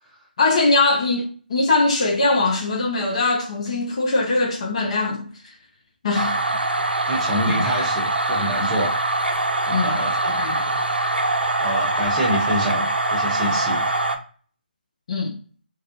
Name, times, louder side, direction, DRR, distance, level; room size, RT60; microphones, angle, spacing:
voice 1, 0.4-5.5 6.0-6.4 7.5-7.6 9.7-10.0 10.2-10.6 15.1-15.3, left 3 dB, 40° left, 0.5 m, -21 dB
sound 1, 6.1-14.2, right 2 dB, 80° right, 0.5 m, -23 dB
voice 2, 7.1-9.0 9.7-10.1 11.6-13.8, equal, 5° right, 0.7 m, -27 dB
2.3 x 2.2 x 2.7 m
figure-of-eight pair, 150°, 5 cm